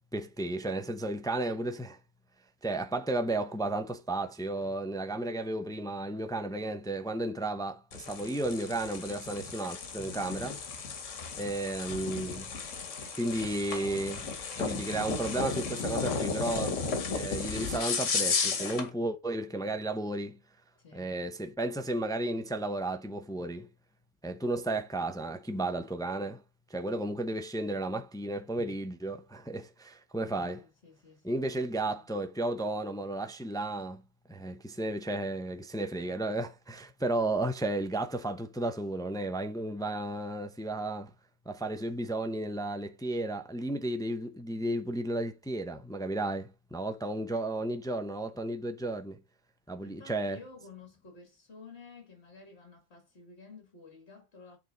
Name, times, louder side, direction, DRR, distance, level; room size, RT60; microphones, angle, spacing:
voice 1, 0.1-2.0 2.6-10.5 11.4-12.5 13.2-14.3 14.6-16.8 17.1-20.4 20.9-23.7 24.2-26.4 26.7-30.6 31.2-34.0 34.3-41.1 41.5-49.2 49.7-50.4, right 2 dB, 5° left, 0.3 m, -33 dB
sound 1, 7.9-18.9, left 5 dB, 90° left, 1.6 m, -34 dB
voice 2, 10.2-10.7 20.8-21.2 30.6-32.1 49.8-54.6, left 4 dB, 60° left, 2.6 m, -52 dB
8.6 x 4.0 x 3.9 m
omnidirectional pair, 1.3 m